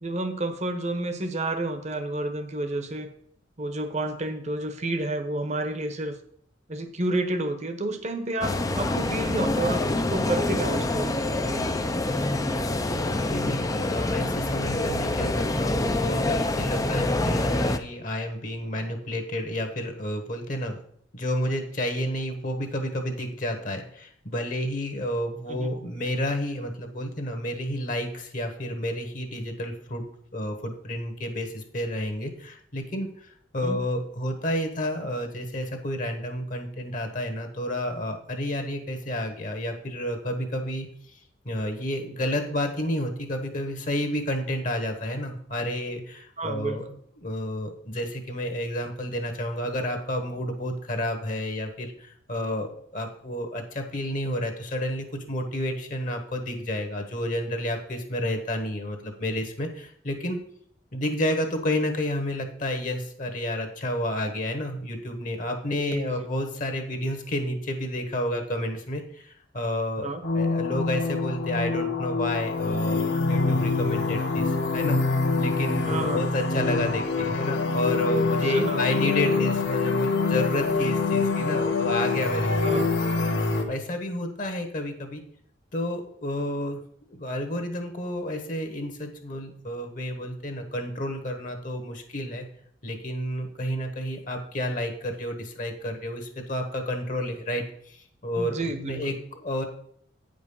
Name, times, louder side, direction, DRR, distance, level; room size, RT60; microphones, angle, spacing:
voice 1, 0.0-3.1 3.6-6.2 6.7-11.7 25.5-25.7 33.6-33.8 46.4-47.0 65.8-66.3 70.0-70.2 75.8-76.2 78.4-78.9 82.6-82.9 98.4-99.2, right 2 dB, 35° right, 8 dB, 1.0 m, -30 dB
sound 1, 8.4-17.8, left 2 dB, 20° left, 0.5 m, -26 dB
voice 2, 13.3-20.8 21.1-30.1 30.3-40.9 41.4-46.8 47.2-60.4 60.9-82.9 83.7-85.2 85.7-86.8 87.2-92.5 92.8-98.6 98.9-99.6, left 1 dB, 45° left, 5 dB, 1.3 m, -30 dB
sound 2, 70.2-83.6, left 3 dB, 65° left, 1.2 m, -25 dB
9.2 x 5.2 x 5.5 m, 0.65 s
head